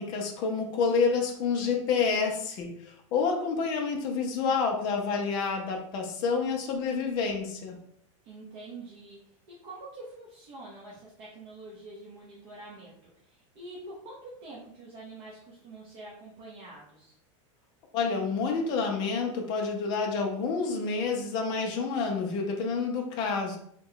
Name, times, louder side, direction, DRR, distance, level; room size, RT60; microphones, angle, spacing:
voice 1, 0.0-7.8 17.9-23.6, left 5 dB, 25° left, 1 dB, 0.5 m, -28 dB
voice 2, 8.2-9.2 9.5-17.2, right 2 dB, 35° right, -5 dB, 0.7 m, -46 dB
2.9 x 2.2 x 3.7 m, 0.68 s
supercardioid pair, 175°, 17 cm